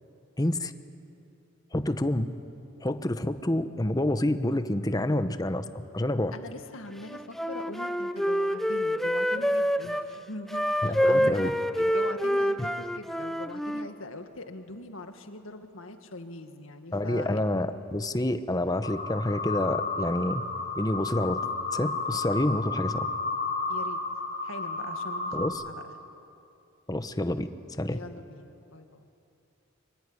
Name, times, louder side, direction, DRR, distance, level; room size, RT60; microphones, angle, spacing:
voice 1, 0.4-0.7 1.7-2.3 2.8-6.3 10.8-11.5 16.9-20.5 20.8-21.5 21.7-23.1 25.3-25.6 26.9-27.5 27.8-28.0, left 1 dB, 20° left, 10 dB, 0.9 m, -28 dB
voice 2, 6.3-11.5 11.8-17.4 23.7-24.0 24.4-25.8 27.9-29.1, left 2 dB, 80° left, 6 dB, 2.0 m, -42 dB
Wind instrument woodwind instrument, 7.1-10.1 10.5-13.9, equal, ahead, 0.6 m, -27 dB
sound 1, 18.8-25.5, left 3 dB, 40° left, 4.8 m, -32 dB
24.5 x 24.0 x 9.8 m, 2.7 s
head